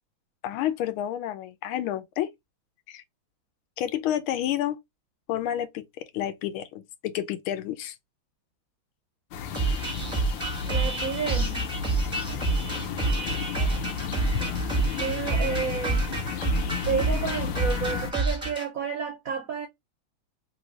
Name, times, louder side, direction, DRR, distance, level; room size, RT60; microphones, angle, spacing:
voice 1, 0.4-2.3 2.9-3.0 3.8-4.8 5.3-8.0, left 11 dB, 90° left, 1.5 m, -30 dB
sound 1, 9.3-18.1, left 6 dB, 75° left, 1.3 m, -33 dB
sound 2, 9.5-18.6, right 3 dB, 5° right, 0.7 m, -28 dB
voice 2, 10.6-11.7 15.0-16.1 16.8-19.7, right 6 dB, 70° right, 0.8 m, -31 dB
3.4 x 2.7 x 2.9 m
omnidirectional pair, 2.3 m